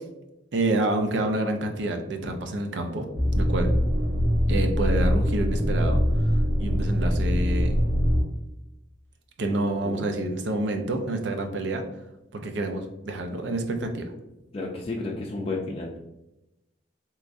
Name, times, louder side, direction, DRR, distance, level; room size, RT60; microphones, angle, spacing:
voice 1, 0.5-3.1 3.3-3.8 4.5-6.0 6.6-7.8 9.4-11.8 12.3-14.0, right 2 dB, 70° right, 5 dB, 0.5 m, -28 dB
sound 1, 3.1-8.2, equal, 90° right, 1.1 m, -23 dB
voice 2, 14.5-16.0, left 2 dB, 30° left, -2 dB, 0.4 m, -32 dB
3.5 x 3.1 x 2.5 m, 0.93 s
head